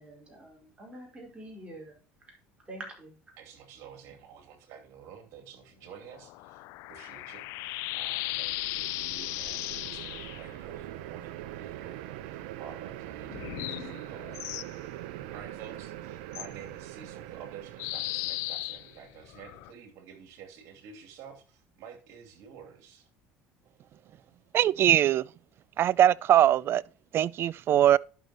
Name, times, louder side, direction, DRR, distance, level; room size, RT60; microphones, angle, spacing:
voice 1, 0.0-2.4 2.6-3.2, right 1 dB, 20° right, 4.9 m, -46 dB
voice 2, 3.4-14.4 15.3-23.1, right 7 dB, 65° right, 2.7 m, -49 dB
sound 1, 6.0-10.5 13.3-14.7 16.3-16.5 17.8-19.7, left 20 dB, 70° left, 0.4 m, -36 dB
sound 2, 7.7-19.1, right 13 dB, 80° right, 0.8 m, -43 dB
voice 3, 24.5-25.2 25.8-26.8 27.1-28.0, right 11 dB, 50° right, 0.3 m, -21 dB
11.0 x 6.7 x 3.0 m
supercardioid pair, 85°, 5 cm